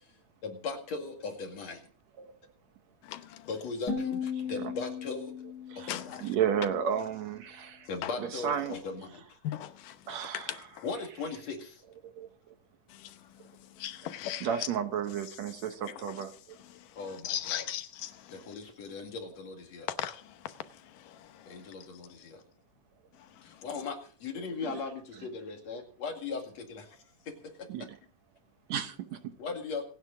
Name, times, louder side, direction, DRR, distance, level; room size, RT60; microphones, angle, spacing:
voice 1, 0.4-1.8 3.5-5.3 5.8-6.2 7.9-9.2 10.8-11.7 17.0-17.6 18.3-19.9 21.5-22.2 23.6-26.8 29.4-29.8, left 4 dB, 55° left, 3.3 m, -38 dB
sound 1, 3.9-6.9, left 6 dB, 30° left, 7.2 m, -37 dB
voice 2, 4.4-4.7 5.7-5.9 6.2-7.9 8.2-8.8 10.1-10.8 12.0-12.6 14.4-16.6 24.6-24.9 25.1-25.3 25.7-25.8 27.7-28.0 28.7-29.3, right 8 dB, 65° right, 2.0 m, -33 dB
voice 3, 9.4-9.9 13.8-14.5 17.2-18.1 20.0-20.2, left 12 dB, 85° left, 2.6 m, -35 dB
26.5 x 9.6 x 3.8 m
omnidirectional pair, 3.7 m